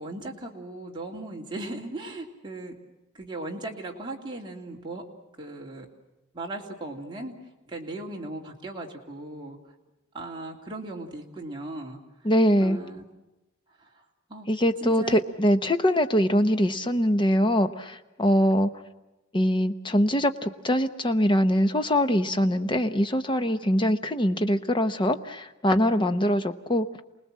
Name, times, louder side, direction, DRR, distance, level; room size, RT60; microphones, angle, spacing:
voice 1, 0.0-2.7 3.1-5.0 5.4-5.9 6.3-7.3 7.7-9.6 10.1-12.0 12.6-13.0 13.8-13.9 14.3-14.5 14.8-15.2 23.3-23.6 25.9-26.2, right 2 dB, 20° right, -1 dB, 2.8 m, -37 dB
voice 2, 12.2-12.8 14.5-18.7 19.3-26.9, equal, 20° left, 9 dB, 0.9 m, -23 dB
28.5 x 19.5 x 7.5 m, 1.0 s
head